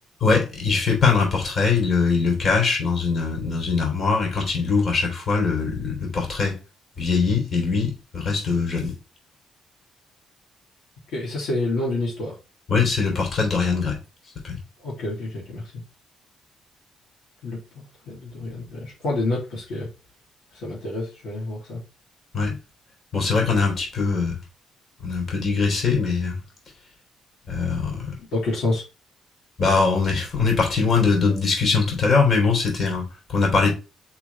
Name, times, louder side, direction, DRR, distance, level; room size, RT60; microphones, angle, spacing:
voice 1, 0.2-6.6 7.0-9.0 12.7-14.0 14.4-14.6 22.3-22.6 23.1-24.3 25.0-26.4 27.5-28.2 29.6-33.7, left 4 dB, 50° left, 4.3 m, -22 dB
voice 2, 11.1-12.3 14.8-15.6 17.4-17.6 18.1-19.9 20.5-21.8 28.3-28.8, left 2 dB, 85° left, 3.7 m, -28 dB
6.0 x 5.0 x 4.3 m
cardioid pair, 90°, 0 cm